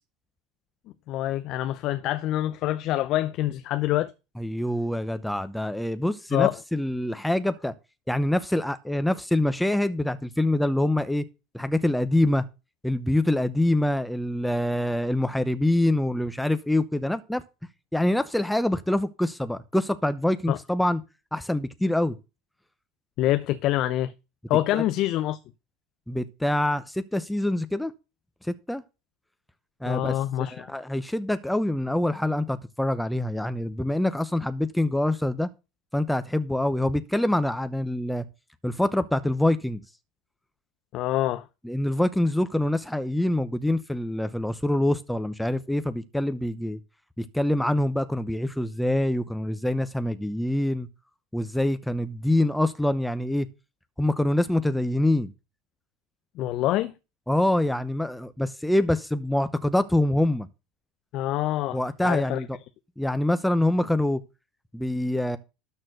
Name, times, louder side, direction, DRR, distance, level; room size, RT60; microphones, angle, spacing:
voice 1, 1.1-4.1 6.3-6.6 20.5-20.6 23.2-24.1 24.5-25.4 29.9-30.7 40.9-41.5 56.4-56.9 61.1-62.4, left 14 dB, 55° left, 0.7 m, -26 dB
voice 2, 4.4-7.7 8.1-11.2 11.5-12.4 12.8-17.4 17.9-21.0 21.3-22.2 24.7-24.8 26.1-27.9 28.4-28.8 29.8-35.5 35.9-38.2 38.6-39.8 41.6-46.8 47.2-50.9 51.3-53.5 54.0-55.3 57.3-60.5 61.7-62.6 63.0-64.2 64.7-65.4, left 1 dB, 5° left, 0.8 m, -25 dB
12.5 x 4.3 x 6.5 m
hypercardioid pair, 80°, 0 cm